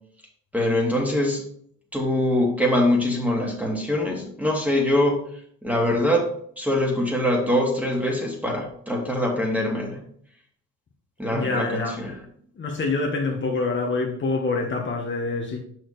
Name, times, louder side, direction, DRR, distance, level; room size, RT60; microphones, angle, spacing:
voice 1, 0.5-1.4 1.9-5.2 5.6-6.3 6.6-10.0 11.2-12.1, left 1 dB, 5° right, 0 dB, 2.1 m, -23 dB
voice 2, 11.3-12.0 12.6-15.6, left 3 dB, 40° left, 1 dB, 1.3 m, -26 dB
6.2 x 6.1 x 3.3 m, 0.63 s
cardioid pair, 90°, 30 cm